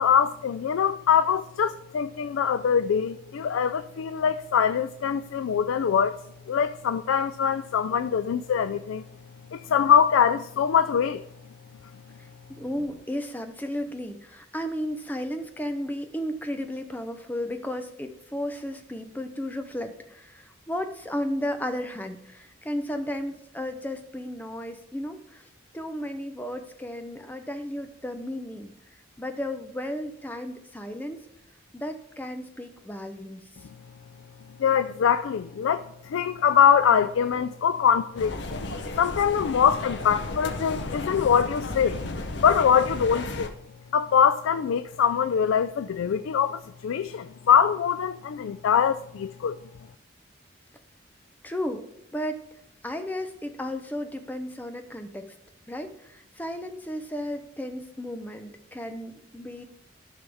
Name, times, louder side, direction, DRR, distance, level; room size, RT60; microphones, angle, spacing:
voice 1, 0.0-6.2 6.5-9.0 9.5-11.2 34.6-38.4 39.0-42.0 42.4-43.5 43.9-49.6, left 7 dB, 80° left, 0.3 m, -23 dB
voice 2, 12.5-25.4 25.7-28.7 29.2-31.2 31.7-33.4 51.4-51.8 52.1-52.4 52.8-55.2 55.7-59.6, left 1 dB, 10° left, 0.6 m, -34 dB
sound 1, 38.2-43.5, left 2 dB, 55° left, 0.7 m, -34 dB
13.0 x 5.6 x 3.5 m
head